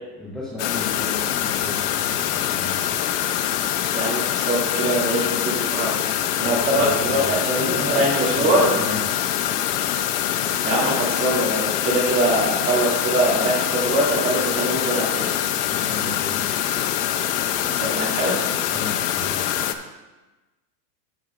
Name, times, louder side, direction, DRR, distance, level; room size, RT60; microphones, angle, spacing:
voice 1, 0.2-2.8 6.4-9.0 15.7-16.4 18.7-19.4, left 1 dB, ahead, -9 dB, 0.4 m, -33 dB
sound 1, 0.6-19.7, left 11 dB, 70° left, 0.8 m, -24 dB
voice 2, 3.9-5.9 6.4-8.7 10.1-10.3 10.6-15.3 17.6-18.4, right 1 dB, 25° right, -4 dB, 2.5 m, -23 dB
14.0 x 6.1 x 2.5 m, 1.1 s
supercardioid pair, 160°, 48 cm